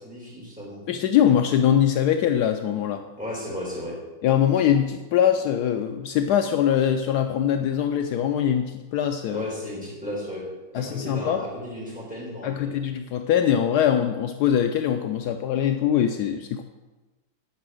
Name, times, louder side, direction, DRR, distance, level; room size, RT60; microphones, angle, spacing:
voice 1, 0.0-0.8 3.2-4.0 9.3-10.4 10.7-12.7, left 1 dB, 5° right, -7 dB, 4.1 m, -34 dB
voice 2, 0.9-3.0 4.2-9.4 10.7-11.5 12.4-16.6, left 9 dB, 80° left, 6 dB, 0.9 m, -22 dB
8.8 x 6.1 x 7.6 m, 1.2 s
omnidirectional pair, 2.3 m